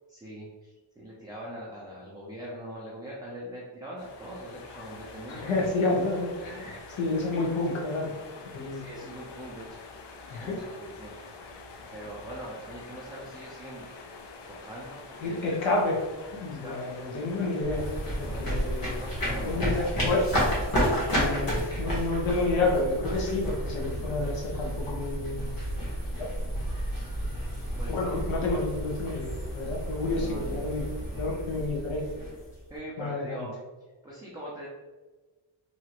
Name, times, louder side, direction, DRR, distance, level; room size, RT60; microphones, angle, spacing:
voice 1, 0.1-6.0 6.7-6.8 8.7-10.0 10.4-11.4 11.9-13.9 14.5-15.6 16.4-16.8 18.3-18.5 18.8-20.3 20.8-21.1 27.8-28.1 30.2-30.6 31.1-31.3 32.7-33.5 34.0-34.7, equal, 10° right, -6 dB, 0.4 m, -42 dB
sound 1, 4.0-20.1, left 3 dB, 60° left, 0.5 m, -46 dB
voice 2, 5.3-8.1 8.5-8.8 10.3-10.6 15.2-16.0 16.3-17.9 18.2-20.3 21.2-25.6 26.2-26.3 27.9-30.9 31.2-32.0 33.0-33.5, left 2 dB, 80° left, -2 dB, 0.9 m, -30 dB
sound 2, 17.6-32.8, equal, 45° left, 1.2 m, -31 dB
2.9 x 2.4 x 2.8 m, 1.2 s
wide cardioid pair, 145°, 48 cm